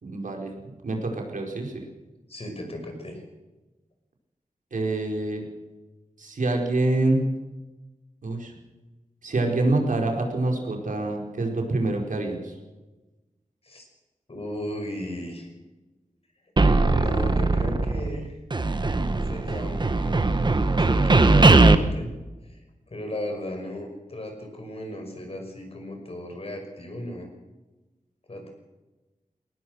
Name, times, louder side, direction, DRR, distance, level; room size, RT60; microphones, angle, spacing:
voice 1, 0.0-0.5 0.8-1.9 4.7-5.4 6.2-7.3 8.2-8.5 9.2-12.6, right 2 dB, 80° right, 1 dB, 4.7 m, -26 dB
voice 2, 2.3-3.2 13.6-13.8 14.3-15.5 16.9-18.3 19.2-20.2 20.8-22.1 22.4-22.6 22.9-27.3 28.3-28.5, left 1 dB, 45° left, 3 dB, 6.0 m, -35 dB
sound 1, 16.6-18.2 18.5-21.8, right 3 dB, 35° right, 1.3 m, -19 dB
21.5 x 19.0 x 6.4 m, 1.1 s
wide cardioid pair, 100°, 13 cm